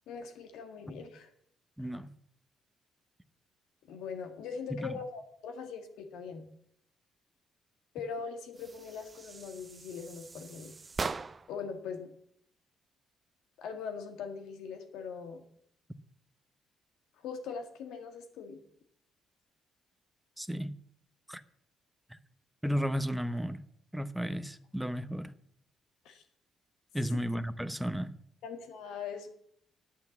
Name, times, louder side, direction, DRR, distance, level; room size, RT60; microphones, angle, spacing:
voice 1, 0.1-1.3 1.8-1.9 3.9-6.5 7.9-10.7 11.5-12.1 13.6-15.4 17.2-18.6 26.0-26.2 28.4-29.3, left 6 dB, 90° left, 2.0 m, -41 dB
voice 2, 1.8-2.1 4.7-5.0 20.4-20.7 21.3-21.4 22.1-22.2 22.6-23.6 23.9-25.3 26.9-28.1, equal, 5° right, 0.8 m, -33 dB
sound 1, 8.5-11.6, right 4 dB, 30° right, 0.5 m, -41 dB
10.0 x 8.5 x 7.2 m
cardioid pair, 90°, 0 cm